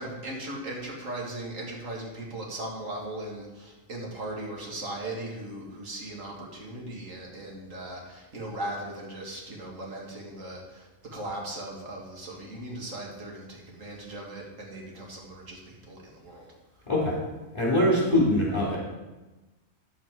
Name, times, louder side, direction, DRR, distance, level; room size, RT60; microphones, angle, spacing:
voice 1, 0.0-16.5, right 1 dB, 80° right, -2 dB, 2.2 m, -38 dB
voice 2, 16.9-17.2 17.5-18.8, left 1 dB, 20° left, -5 dB, 3.6 m, -23 dB
10.0 x 7.5 x 4.7 m, 1.1 s
omnidirectional pair, 1.3 m